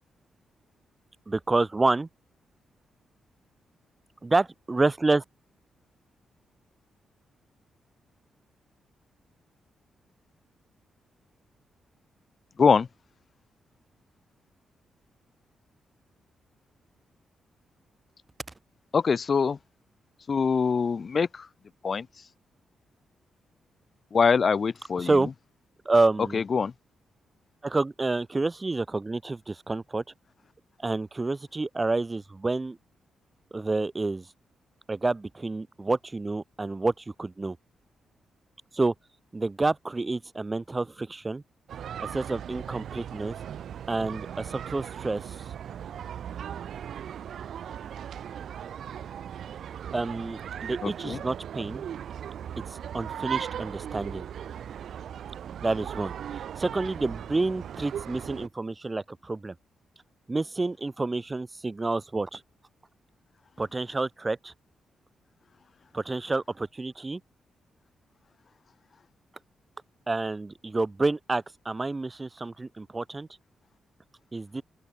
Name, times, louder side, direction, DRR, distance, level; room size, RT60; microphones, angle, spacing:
voice 1, 1.3-2.1 4.2-5.2 25.0-25.3 25.9-26.4 27.6-30.0 30.8-32.8 33.5-34.3 34.9-37.6 38.7-38.9 39.3-41.4 42.0-43.4 43.9-45.4 49.9-51.8 52.9-54.2 55.6-56.2 56.6-59.6 60.3-62.4 63.6-64.5 65.9-67.2 70.1-73.3 74.3-74.6, right 3 dB, 25° right, 5.2 m, -28 dB
voice 2, 18.9-19.6 20.3-21.5 21.8-22.1 24.1-25.2 26.3-26.7 50.8-51.2, left 5 dB, 50° left, 2.4 m, -24 dB
sound 1, 41.7-58.5, right 9 dB, 75° right, 3.0 m, -38 dB
open air
supercardioid pair, 55°, 0 cm